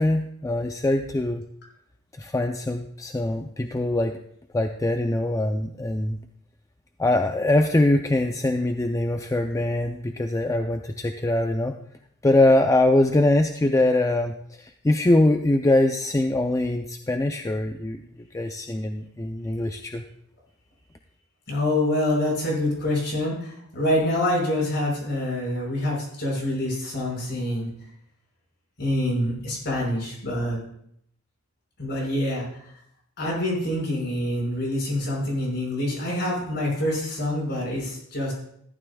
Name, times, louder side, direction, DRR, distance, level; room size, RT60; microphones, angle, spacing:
voice 1, 0.0-1.4 2.2-4.2 4.5-6.2 7.0-11.8 12.2-18.0 18.3-20.0, left 1 dB, 15° left, 6 dB, 0.4 m, -23 dB
voice 2, 21.5-27.7 28.8-30.6 31.8-32.5 33.2-38.3, left 1 dB, 50° left, -2 dB, 5.4 m, -26 dB
14.5 x 12.5 x 2.3 m, 0.69 s
head